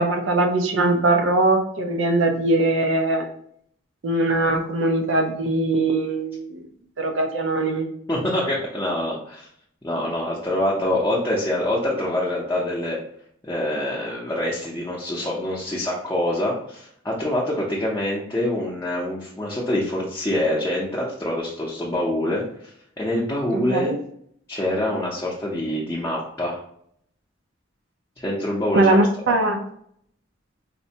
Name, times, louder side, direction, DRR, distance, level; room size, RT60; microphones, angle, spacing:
voice 1, 0.0-3.3 4.0-6.6 7.0-7.9 23.5-24.0 28.7-29.6, right 2 dB, 85° right, 4 dB, 0.6 m, -21 dB
voice 2, 8.1-9.5 9.8-13.0 13.4-22.4 23.0-23.9 24.5-26.6 28.2-28.9 29.3-29.4, left 1 dB, 15° left, -6 dB, 0.6 m, -25 dB
4.1 x 2.1 x 2.7 m, 0.67 s
head